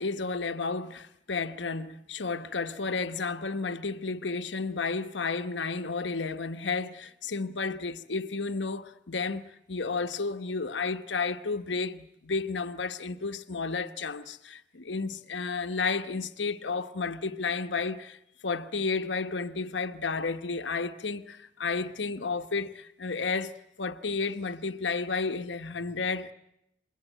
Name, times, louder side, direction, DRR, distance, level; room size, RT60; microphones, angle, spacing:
voice 1, 0.0-18.2 18.4-26.3, left 4 dB, 85° left, 1.1 m, -32 dB
26.0 x 22.0 x 9.2 m
head